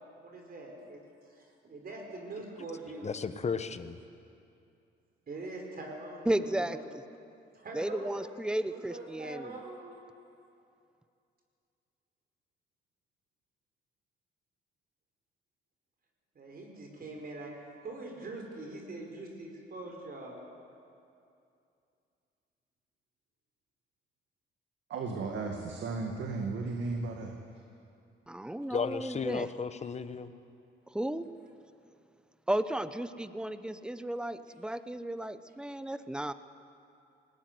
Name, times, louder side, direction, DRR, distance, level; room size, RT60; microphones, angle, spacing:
voice 1, 0.2-1.0 1.3-3.1 5.3-6.8 7.5-8.2 8.7-10.0 16.3-17.5 17.8-20.3, right 2 dB, 50° right, 1 dB, 5.0 m, -43 dB
voice 2, 3.0-4.0 28.7-30.3, left 5 dB, 35° left, 11 dB, 1.2 m, -34 dB
voice 3, 6.3-7.0 7.7-9.6 28.3-29.5 30.9-31.2 32.5-36.3, right 1 dB, 5° right, 12 dB, 0.9 m, -34 dB
voice 4, 24.9-27.4, right 3 dB, 70° right, 3 dB, 2.1 m, -35 dB
20.5 x 18.5 x 9.6 m, 2.6 s
cardioid pair, 90°, 20 cm